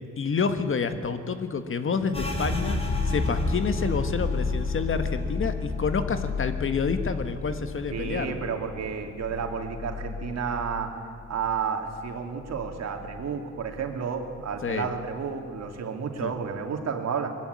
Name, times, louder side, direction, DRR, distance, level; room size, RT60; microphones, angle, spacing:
voice 1, 0.2-8.3 14.6-14.9 16.2-16.3, left 5 dB, 45° left, 9 dB, 1.5 m, -28 dB
sound 1, 2.1-11.5 11.8-13.1 13.4-13.9 14.3-14.9, left 3 dB, 20° left, 4.5 m, -31 dB
voice 2, 7.9-10.9 11.3-17.3, right 6 dB, 60° right, 4 dB, 2.8 m, -31 dB
21.5 x 15.0 x 9.6 m, 2.4 s
cardioid pair, 90°, 30 cm